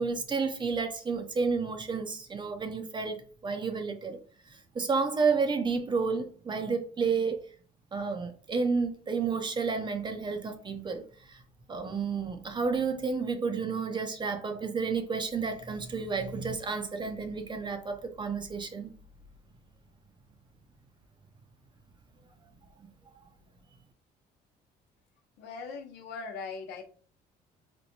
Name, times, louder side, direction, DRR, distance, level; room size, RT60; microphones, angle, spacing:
voice 1, 0.0-4.2 4.5-7.5 7.9-11.4 11.7-18.9 22.8-22.9, right 5 dB, 25° right, 0.6 m, -31 dB
voice 2, 25.4-26.8, left 4 dB, 90° left, 0.8 m, -40 dB
4.2 x 2.2 x 2.9 m
cardioid pair, 110°, 17 cm